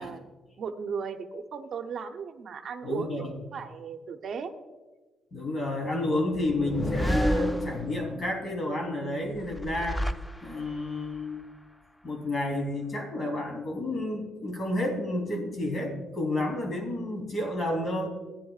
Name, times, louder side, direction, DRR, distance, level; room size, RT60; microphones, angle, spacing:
voice 1, 0.0-4.5, right 6 dB, 60° right, 6 dB, 0.8 m, -36 dB
voice 2, 2.8-3.3 5.3-10.1 10.4-11.4 12.0-18.1, left 1 dB, 45° left, 1 dB, 3.6 m, -30 dB
sound 1, 6.3-8.3 9.4-10.9, equal, 5° left, 0.5 m, -30 dB
17.0 x 10.0 x 2.5 m, 1.3 s
cardioid pair, 90°, 0 cm